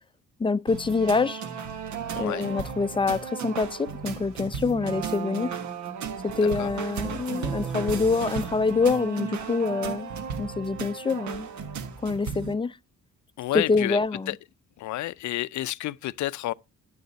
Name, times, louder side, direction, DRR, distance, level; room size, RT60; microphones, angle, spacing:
voice 1, 0.4-1.4 2.2-5.5 6.2-10.1 10.4-11.5 12.0-12.8 13.5-14.3, left 4 dB, 15° left, 0.5 m, -25 dB
sound 1, 0.7-12.5, right 7 dB, 70° right, 1.5 m, -34 dB
voice 2, 2.2-2.5 6.3-6.7 13.4-14.0 14.3-14.4 14.8-16.5, left 15 dB, 75° left, 0.6 m, -30 dB
9.5 x 9.4 x 4.1 m
cardioid pair, 90°, 30 cm